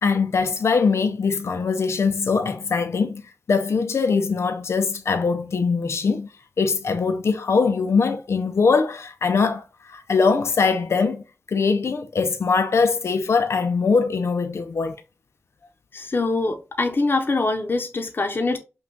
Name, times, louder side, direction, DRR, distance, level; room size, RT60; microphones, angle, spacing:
voice 1, 0.0-6.3 6.6-14.9, left 4 dB, 75° left, 0.6 m, -22 dB
voice 2, 15.9-18.6, left 3 dB, 50° left, 0.8 m, -23 dB
5.8 x 2.4 x 3.8 m
wide cardioid pair, 80°, 5 cm